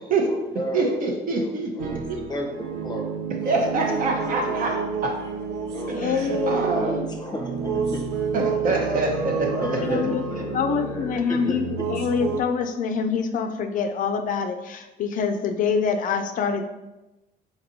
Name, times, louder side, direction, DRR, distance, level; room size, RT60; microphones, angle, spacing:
voice 1, 0.0-3.2 3.7-4.8 5.7-6.1 6.7-8.0 8.7-8.8 9.5-11.6, left 1 dB, 25° left, 1 dB, 0.7 m, -34 dB
voice 2, 0.7-2.2 3.4-4.8 5.0-5.1 6.0-7.0 8.3-10.0, right 3 dB, 55° right, 1 dB, 0.9 m, -25 dB
sound 1, 1.8-12.4, right 5 dB, 90° right, 0.6 m, -29 dB
voice 3, 5.9-6.6 9.8-16.7, left 6 dB, 55° left, 6 dB, 0.4 m, -25 dB
4.2 x 4.0 x 2.7 m, 1.0 s
cardioid pair, 110°, 17 cm